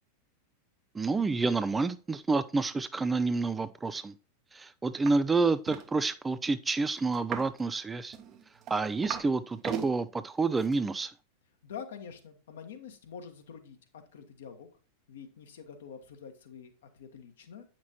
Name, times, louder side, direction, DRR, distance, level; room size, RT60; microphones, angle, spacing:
voice 1, 0.9-4.1 4.5-8.2 8.7-11.1, right 3 dB, 15° right, 0.3 m, -29 dB
sound 1, 5.0-5.2 5.4-5.9 7.1-7.6 8.1-9.3 9.6-9.9 10.6-10.7, right 8 dB, 35° right, 0.8 m, -37 dB
voice 2, 11.6-14.7 15.1-17.6, left 7 dB, 60° left, 1.2 m, -46 dB
8.3 x 5.9 x 2.9 m
figure-of-eight pair, 90°, 0 cm